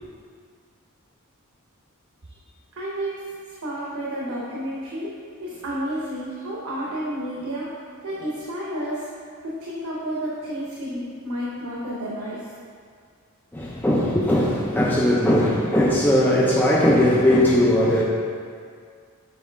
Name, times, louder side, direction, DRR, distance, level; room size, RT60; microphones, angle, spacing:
voice 1, 2.7-5.1 5.4-7.7 8.0-9.1 9.4-12.5, equal, 80° right, -5 dB, 0.9 m, -31 dB
voice 2, 13.5-18.0, left 1 dB, 10° left, -5 dB, 0.4 m, -19 dB
7.1 x 3.9 x 3.4 m, 2.1 s
head